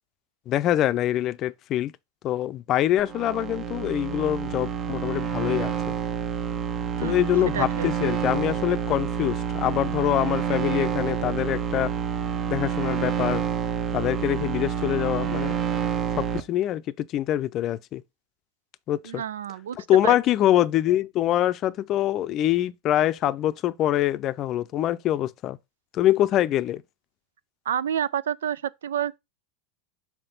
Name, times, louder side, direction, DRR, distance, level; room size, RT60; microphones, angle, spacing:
voice 1, 0.5-1.9 2.2-5.9 7.0-11.9 12.5-13.4 13.9-15.6 16.2-18.0 18.9-19.2 19.9-25.6 25.9-26.8, left 13 dB, 40° left, 0.5 m, -24 dB
sound 1, 3.0-16.4, right 8 dB, 35° right, 0.9 m, -28 dB
voice 2, 7.5-7.9 19.0-19.8 20.0-20.1 27.7-29.2, right 9 dB, 90° right, 0.4 m, -29 dB
5.8 x 4.4 x 3.9 m
hypercardioid pair, 115°, 0 cm